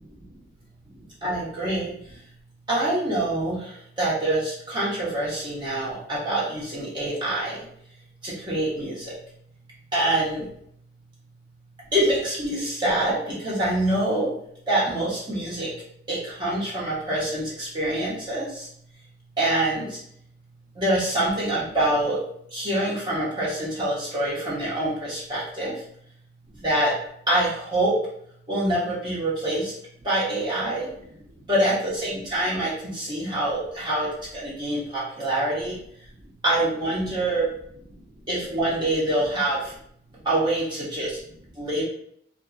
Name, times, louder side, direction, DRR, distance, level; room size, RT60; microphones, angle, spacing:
voice 1, 1.2-1.9 2.7-3.6 4.0-7.6 8.2-8.9 9.9-10.4 11.9-14.3 14.7-15.7 16.1-18.5 19.4-19.9 20.8-22.2 22.5-25.7 26.6-26.9 27.3-28.0 28.5-29.7 30.0-30.9 31.5-35.7 36.4-37.5 38.3-39.6 40.3-41.1 41.6-41.8, right 1 dB, 25° right, -8 dB, 0.9 m, -25 dB
2.5 x 2.5 x 2.4 m, 0.69 s
head